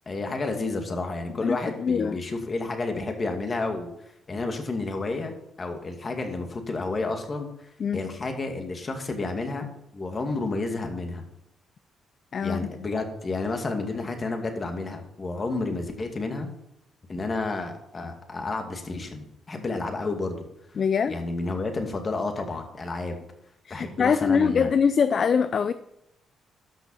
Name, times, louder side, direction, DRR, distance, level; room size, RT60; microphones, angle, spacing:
voice 1, 0.1-3.9 4.3-9.7 9.9-11.2 12.4-16.5 17.1-20.4 21.1-23.2 23.7-24.7, left 3 dB, 35° left, 2.3 m, -31 dB
voice 2, 1.4-2.2 7.8-8.0 12.3-12.7 20.8-21.1 23.7-25.7, left 6 dB, 50° left, 0.4 m, -23 dB
13.0 x 6.0 x 5.7 m
cardioid pair, 90°, 0 cm